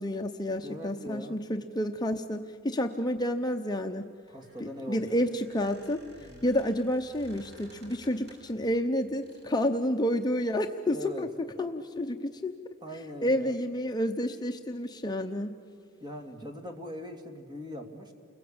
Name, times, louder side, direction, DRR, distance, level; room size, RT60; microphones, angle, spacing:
voice 1, 0.0-4.0 4.6-12.7 13.2-15.5, left 1 dB, 20° left, 4 dB, 0.8 m, -30 dB
voice 2, 0.6-1.4 4.3-5.2 6.2-6.5 10.9-11.2 12.8-13.6 16.0-18.1, equal, 20° right, 5 dB, 2.6 m, -41 dB
Squeak, 4.2-8.6 9.2-9.7, equal, 55° right, 6.9 m, -55 dB
30.0 x 21.5 x 8.7 m, 2.6 s
head